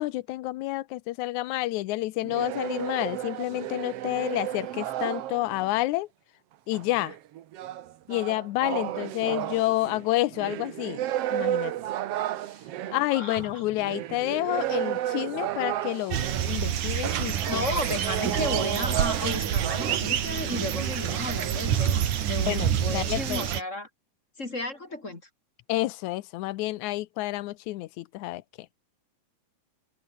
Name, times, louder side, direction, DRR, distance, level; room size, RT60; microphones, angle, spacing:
voice 1, 0.0-6.1 6.7-7.2 8.1-11.0 11.3-11.7 12.9-17.7 18.3-18.4 22.5-23.5 25.7-28.4, left 17 dB, 75° left, 2.1 m, -29 dB
sound 1, 2.2-5.7 6.7-16.6 17.3-20.0, right 12 dB, 65° right, 1.8 m, -33 dB
voice 2, 13.1-13.6 17.4-23.9 24.4-25.2, left 2 dB, 25° left, 2.7 m, -34 dB
sound 2, 16.1-23.6, right 9 dB, 90° right, 3.5 m, -27 dB
omnidirectional pair, 3.5 m